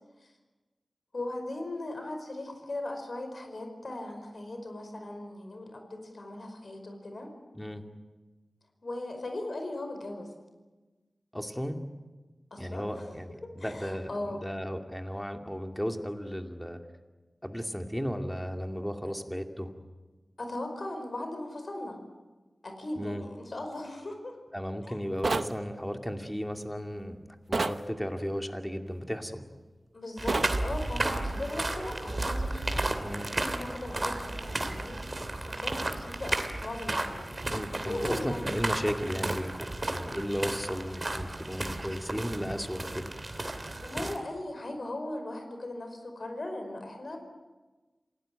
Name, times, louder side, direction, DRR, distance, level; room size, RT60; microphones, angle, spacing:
voice 1, 1.1-7.3 8.8-10.3 12.5-13.0 13.6-14.4 19.0-19.1 20.4-22.0 22.6-24.4 24.8-25.0 29.9-37.4 37.8-38.6 43.8-47.2, left 1 dB, 60° left, 5 dB, 5.1 m, -38 dB
voice 2, 11.3-11.8 12.6-16.8 17.4-19.7 23.0-23.2 24.5-27.2 27.5-29.4 33.0-33.3 37.5-43.1, equal, 5° left, 4 dB, 2.6 m, -35 dB
sound 1, 25.2-25.5 27.5-27.8 30.3-30.5, right 3 dB, 65° right, 0.9 m, -28 dB
sound 2, 30.2-44.2, right 2 dB, 40° right, 2.8 m, -33 dB
27.5 x 18.0 x 9.2 m, 1.2 s
wide cardioid pair, 55°, 0 cm